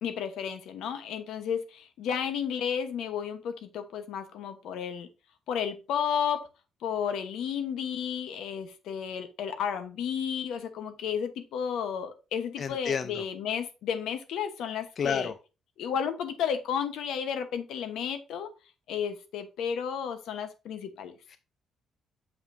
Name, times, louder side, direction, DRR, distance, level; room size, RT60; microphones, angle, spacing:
voice 1, 0.0-5.1 5.5-6.5 6.8-15.3 15.8-18.5 18.9-21.1, left 7 dB, 80° left, 1.0 m, -32 dB
voice 2, 12.6-13.2 15.0-15.3 21.3-21.4, left 6 dB, 50° left, 0.5 m, -30 dB
6.6 x 5.7 x 2.6 m
cardioid pair, 90°, 0 cm